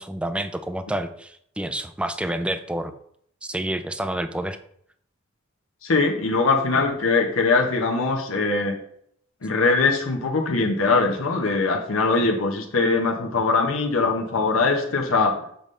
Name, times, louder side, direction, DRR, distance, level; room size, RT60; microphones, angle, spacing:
voice 1, 0.0-2.9 3.4-4.6, right 1 dB, 5° right, 10 dB, 0.4 m, -29 dB
voice 2, 5.8-8.8 9.4-15.3, left 3 dB, 85° left, 1 dB, 0.9 m, -21 dB
7.0 x 5.4 x 3.2 m, 0.68 s
head